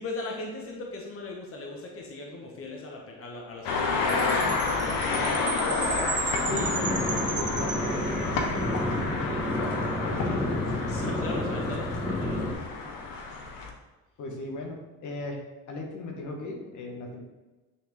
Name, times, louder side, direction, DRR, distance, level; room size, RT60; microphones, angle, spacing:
voice 1, 0.0-4.5 6.2-6.9 10.9-12.6, left 2 dB, 40° left, -1 dB, 1.2 m, -39 dB
sound 1, 3.6-13.7, left 4 dB, 85° left, 0.9 m, -30 dB
Chime, 4.1-8.6, right 5 dB, 35° right, 0.8 m, -35 dB
voice 2, 5.1-5.5 6.4-10.7 14.2-15.4 15.7-17.2, left 2 dB, 60° left, 1 dB, 1.3 m, -37 dB
sound 2, 6.5-12.5, left 1 dB, 10° left, 1.6 m, -30 dB
8.5 x 3.5 x 3.1 m, 1.2 s
supercardioid pair, 90°, 33 cm